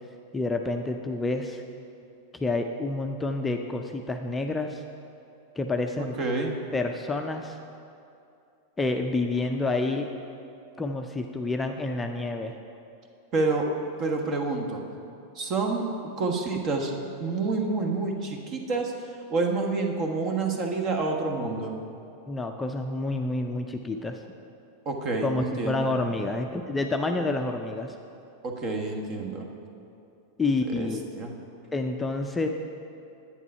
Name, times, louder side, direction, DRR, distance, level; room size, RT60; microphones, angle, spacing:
voice 1, 0.3-1.6 2.4-4.8 5.6-6.2 6.7-7.6 8.8-10.1 10.8-12.5 22.3-24.3 25.2-28.0 30.4-31.0 31.7-32.5, left 2 dB, 10° left, 4 dB, 0.5 m, -28 dB
voice 2, 6.0-6.6 13.3-13.7 14.0-14.8 15.3-15.8 16.2-16.9 17.2-18.9 19.3-21.7 24.8-25.9 28.4-29.5 30.7-30.9 31.1-31.3, right 3 dB, 35° right, 3 dB, 1.4 m, -28 dB
11.0 x 8.6 x 5.5 m, 2.6 s
figure-of-eight pair, 90°, 0 cm